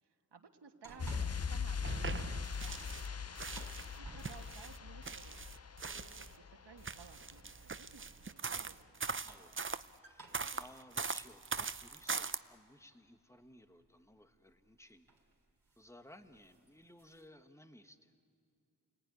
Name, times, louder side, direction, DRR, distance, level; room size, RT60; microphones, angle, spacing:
voice 1, 0.0-3.0 3.3-8.9, right 6 dB, 85° right, 5 dB, 1.5 m, -58 dB
sound 1, 0.8-1.7 2.0-4.7 5.8-6.2 7.2-7.7 9.0-12.4 12.9-13.0 14.5-14.7 15.1-15.3 15.6-15.9 16.2-17.3, right 3 dB, 55° right, 4.0 m, -56 dB
sound 2, 1.0-7.5 7.8-7.9, left 6 dB, 40° left, 0.7 m, -41 dB
sound 3, 1.8-3.1 3.3-6.4 6.8-9.8 10.3-12.4, right 5 dB, 30° right, 0.6 m, -41 dB
voice 2, 9.2-9.7 10.0-15.1 15.8-18.1, left 1 dB, 5° left, 8 dB, 1.5 m, -59 dB
29.5 x 19.5 x 9.7 m, 2.3 s
wide cardioid pair, 55°, 40 cm